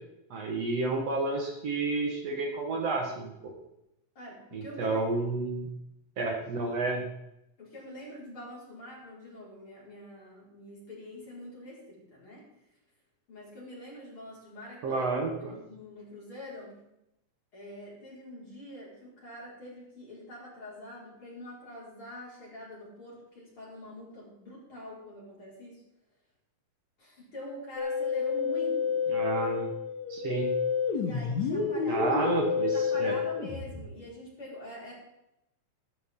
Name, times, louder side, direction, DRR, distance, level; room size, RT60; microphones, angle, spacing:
voice 1, 0.3-3.5 4.5-5.7 6.2-7.0 14.8-15.6 29.1-29.7 30.1-30.5 31.9-33.2, right 3 dB, 60° right, 1 dB, 2.5 m, -31 dB
voice 2, 4.2-5.3 6.6-6.8 7.6-12.4 13.3-15.1 15.4-16.8 17.5-25.8 27.0-29.0 30.9-32.2 32.7-34.9, equal, 40° left, -6 dB, 6.0 m, -45 dB
Musical instrument, 27.8-33.8, left 6 dB, 65° left, 3.0 m, -29 dB
15.5 x 13.0 x 3.8 m, 0.85 s
omnidirectional pair, 3.6 m